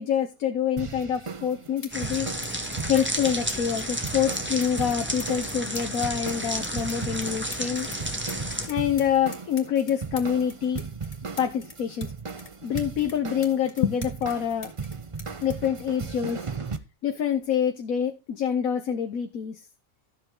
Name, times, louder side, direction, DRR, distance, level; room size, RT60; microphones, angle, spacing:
voice 1, 0.0-2.3 2.9-7.9 8.7-10.8 11.4-12.1 12.6-14.7 15.4-16.4 17.0-19.6, left 8 dB, 85° left, 7 dB, 1.4 m, -26 dB
sound 1, 0.8-16.8, right 5 dB, 30° right, 0.7 m, -37 dB
sound 2, 1.8-2.2 2.4-8.0 8.3-12.1 12.4-14.4 14.6-16.5 17.4-17.6, left 4 dB, 70° left, 2.7 m, -44 dB
sound 3, 1.9-8.7, right 1 dB, 10° right, 1.7 m, -32 dB
13.0 x 7.8 x 3.8 m, 0.26 s
omnidirectional pair, 1.4 m